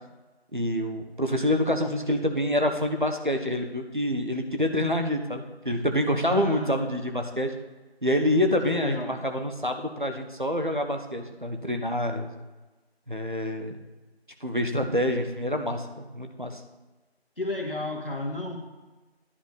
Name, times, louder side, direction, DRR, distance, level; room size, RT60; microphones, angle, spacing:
voice 1, 0.5-7.5 8.0-12.3 13.1-13.8 14.4-15.9 16.1-16.6, left 1 dB, 50° right, 5 dB, 1.0 m, -27 dB
voice 2, 6.3-6.8 8.6-9.2 17.4-18.6, left 2 dB, 60° left, 2 dB, 1.7 m, -32 dB
10.5 x 6.2 x 5.2 m, 1.2 s
figure-of-eight pair, 180°, 32 cm